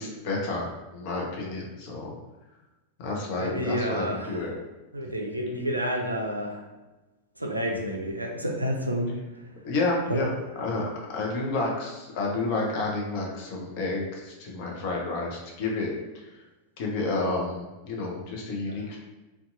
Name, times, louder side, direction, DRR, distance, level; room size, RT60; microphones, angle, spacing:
voice 1, 0.0-2.1 3.0-4.5 9.6-10.3 10.6-15.9 16.8-19.0, left 3 dB, 45° left, -1 dB, 0.6 m, -30 dB
voice 2, 3.4-4.4 4.9-6.6 7.4-9.1 10.1-10.2, equal, 85° right, 1 dB, 0.3 m, -29 dB
2.6 x 2.3 x 2.5 m, 1.1 s
figure-of-eight pair, 90°, 0 cm